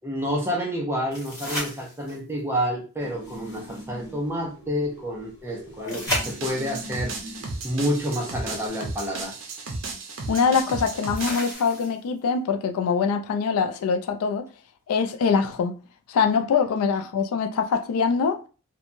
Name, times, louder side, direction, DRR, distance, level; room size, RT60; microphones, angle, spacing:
voice 1, 0.0-7.1 7.6-9.3, equal, 10° right, 0.5 m, -29 dB
sound 1, 1.1-2.4 5.9-6.9 8.8-8.9 11.1-12.2 15.1-15.2, left 1 dB, 15° left, 1.0 m, -32 dB
sound 2, 3.0-8.7, equal, 50° left, 1.1 m, -43 dB
sound 3, 6.1-11.5, right 3 dB, 60° right, 0.6 m, -34 dB
voice 2, 10.3-14.5 14.9-15.7 16.1-18.5, left 5 dB, 85° left, 0.3 m, -23 dB
2.9 x 2.2 x 2.5 m
head